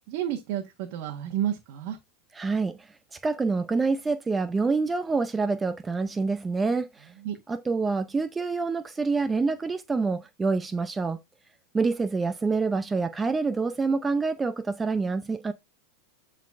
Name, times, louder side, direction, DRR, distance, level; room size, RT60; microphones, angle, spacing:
voice 1, 0.1-2.0 7.2-7.3, right 11 dB, 55° right, 1.3 m, -30 dB
voice 2, 2.3-2.8 3.1-7.1 7.5-11.2 11.7-15.5, right 4 dB, 15° right, 0.5 m, -27 dB
12.0 x 4.0 x 2.5 m
hypercardioid pair, 125°, 0 cm